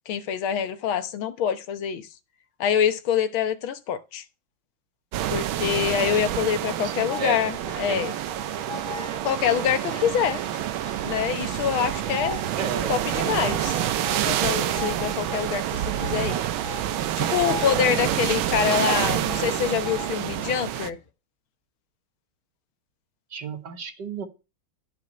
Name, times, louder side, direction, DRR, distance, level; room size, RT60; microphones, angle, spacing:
voice 1, 0.1-2.1 2.6-4.2 5.3-8.1 9.2-10.4 11.0-12.4 12.9-13.8 14.3-15.6 16.0-16.4 17.2-21.0, left 8 dB, 85° left, 1.8 m, -25 dB
sound 1, 5.1-20.9, right 12 dB, 80° right, 1.5 m, -28 dB
voice 2, 6.1-7.5 7.9-8.0 12.5-13.0 23.3-24.3, right 6 dB, 60° right, 1.8 m, -34 dB
sound 2, 7.1-21.1, left 3 dB, 30° left, 1.1 m, -39 dB
11.5 x 5.3 x 5.3 m
omnidirectional pair, 2.2 m